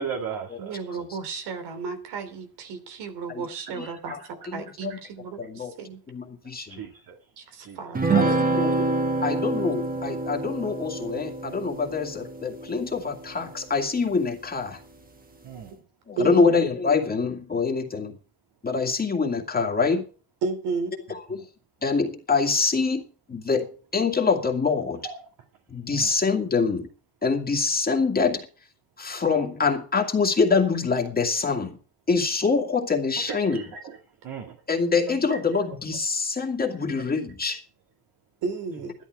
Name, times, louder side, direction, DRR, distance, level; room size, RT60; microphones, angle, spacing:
voice 1, 0.0-0.8 4.1-4.2 4.9-5.0 6.7-7.2 7.6-7.8 15.4-15.7 25.0-25.1 25.9-26.1 33.4-33.6 34.2-34.6, right 6 dB, 60° right, 2 dB, 2.3 m, -36 dB
voice 2, 0.6-4.1 4.5-6.0 7.4-8.3 16.1-16.5 20.4-20.9 38.4-38.9, right 4 dB, 85° right, 8 dB, 3.2 m, -33 dB
voice 3, 3.7-5.0 5.4-5.7 6.1-6.8 8.1-8.9 9.2-14.8 16.1-18.2 18.6-20.0 21.1-21.5 21.8-25.1 25.7-26.9 27.2-28.5 29.0-31.8 32.1-33.6 34.7-37.6, left 4 dB, 25° left, 1 dB, 2.1 m, -25 dB
sound 1, 7.9-13.6, right 3 dB, 20° right, 1.4 m, -27 dB
12.5 x 12.0 x 4.7 m, 0.38 s
cardioid pair, 135°, 39 cm